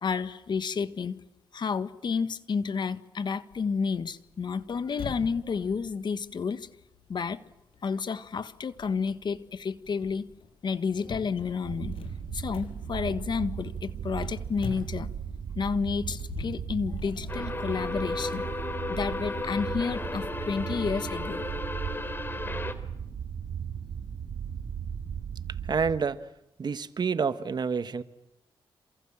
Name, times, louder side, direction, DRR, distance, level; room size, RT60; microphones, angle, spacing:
voice 1, 0.0-1.2 1.5-6.7 7.1-7.4 7.8-10.3 10.6-12.0 12.3-15.1 15.6-18.5 18.9-21.4, left 5 dB, 55° left, 1.6 m, -31 dB
sound 1, 3.5-15.5 16.0-18.6, left 5 dB, 75° left, 6.3 m, -45 dB
sound 2, 11.6-26.0, right 8 dB, 85° right, 2.6 m, -36 dB
sound 3, 17.3-22.7, left 2 dB, 25° left, 3.2 m, -34 dB
voice 2, 25.7-26.2 26.6-28.0, right 5 dB, 50° right, 1.5 m, -28 dB
28.0 x 28.0 x 7.5 m
cardioid pair, 95°, 9 cm